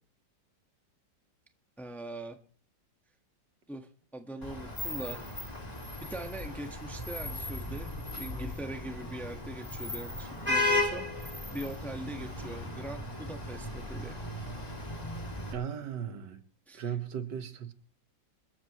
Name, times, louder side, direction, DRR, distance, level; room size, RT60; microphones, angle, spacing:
voice 1, 1.8-2.4 3.7-5.2 6.1-11.1 11.5-14.2 16.7-16.9, right 1 dB, ahead, 1.2 m, -41 dB
Vehicle horn car horn honking / Traffic noise roadway noise, 4.4-15.5, left 2 dB, 20° left, 2.8 m, -36 dB
sound 1, 9.4-10.7, left 2 dB, 65° left, 5.4 m, -51 dB
voice 2, 15.5-16.4 16.7-17.7, right 8 dB, 70° right, 1.9 m, -36 dB
26.0 x 13.5 x 3.1 m
omnidirectional pair, 2.0 m